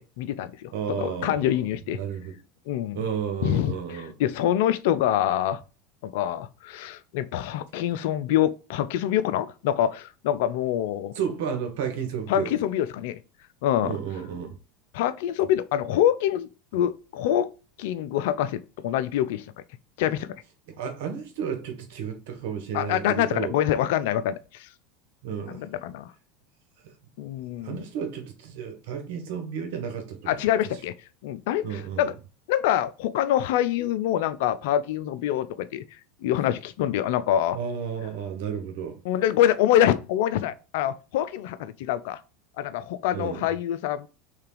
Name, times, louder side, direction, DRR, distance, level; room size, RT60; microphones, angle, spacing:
voice 1, 0.0-2.0 2.7-3.0 3.4-5.6 6.0-11.1 12.3-13.2 13.6-13.9 14.9-17.5 17.8-19.5 20.0-20.4 22.7-24.7 25.5-26.1 27.2-27.8 30.3-30.9 31.2-32.1 32.5-35.8 36.2-37.6 39.0-42.2 42.6-44.1, left 11 dB, 70° left, 0.4 m, -25 dB
voice 2, 0.7-1.5 1.9-2.3 2.9-4.1 11.1-12.5 13.8-14.6 20.8-23.5 25.2-25.6 27.6-30.4 31.6-32.0 37.5-39.0 43.1-43.4, right 7 dB, 70° right, 1.2 m, -32 dB
3.3 x 3.3 x 4.9 m
hypercardioid pair, 90°, 0 cm